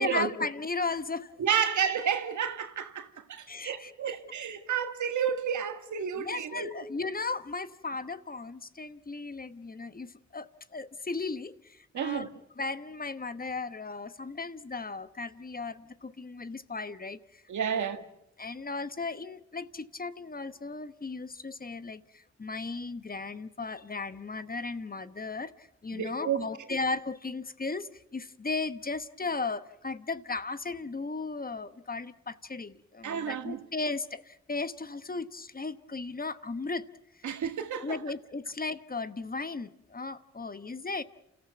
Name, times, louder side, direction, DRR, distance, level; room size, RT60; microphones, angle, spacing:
voice 1, 0.0-1.3 3.5-4.1 6.2-12.3 12.6-17.4 17.7-17.9 18.4-36.8 37.2-37.3 37.8-41.0, left 3 dB, 30° left, 1.1 m, -36 dB
voice 2, 1.4-6.8 11.9-12.3 17.5-18.0 25.9-26.5 33.0-33.6 37.2-38.0, right 8 dB, 80° right, 1.8 m, -31 dB
29.0 x 14.5 x 9.2 m
cardioid pair, 55°, 29 cm